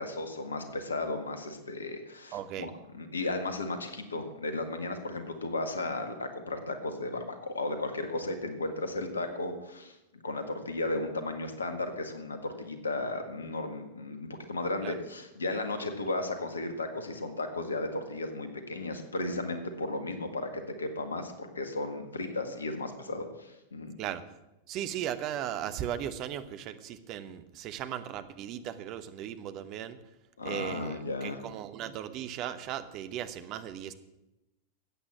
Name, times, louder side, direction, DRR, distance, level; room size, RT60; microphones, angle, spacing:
voice 1, 0.0-10.0 10.2-24.0 30.4-31.4, left 2 dB, 75° left, 8 dB, 1.7 m, -35 dB
voice 2, 2.3-2.7 14.8-14.9 24.0-24.2 24.7-30.0 30.4-30.9 31.2-33.9, right 10 dB, 40° right, 11 dB, 1.1 m, -37 dB
13.5 x 8.7 x 7.4 m, 0.95 s
figure-of-eight pair, 90°, 0 cm